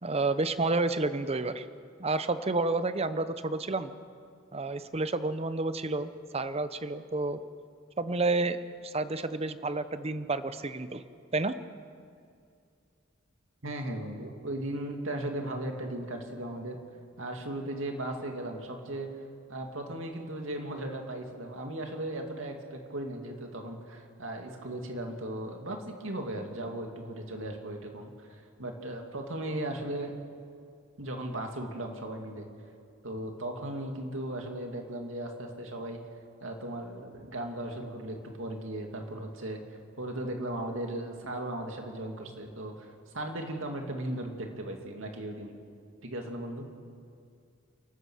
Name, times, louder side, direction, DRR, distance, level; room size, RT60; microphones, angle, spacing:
voice 1, 0.0-1.7 2.0-3.9 4.5-7.4 8.0-8.6 8.8-11.0 11.3-11.5, right 3 dB, 30° right, 12 dB, 0.8 m, -30 dB
voice 2, 13.6-16.8 17.2-19.1 19.5-28.3 28.6-30.1 31.0-32.5 33.0-36.0 36.4-39.6 40.0-42.9 43.1-45.5 46.0-46.7, right 1 dB, 70° right, 3 dB, 2.5 m, -37 dB
29.0 x 15.0 x 6.4 m, 2.4 s
head